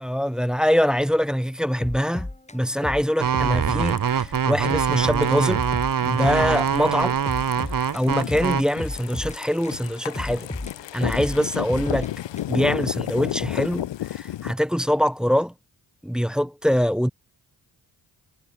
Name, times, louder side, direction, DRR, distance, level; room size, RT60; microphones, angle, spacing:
voice 1, 0.0-5.6 6.0-7.2 7.9-10.5 10.9-12.1 12.5-15.5 16.0-17.1, equal, ahead, 0.5 m, -23 dB
sound 1, 1.8-4.3 4.7-6.7 6.9-9.8 10.2-12.7, left 2 dB, 15° left, 3.8 m, -34 dB
sound 2, 3.2-8.6, right 8 dB, 45° right, 1.2 m, -23 dB
sound 3, 3.7-14.5, left 13 dB, 70° left, 0.9 m, -33 dB
supercardioid pair, 45°, 45 cm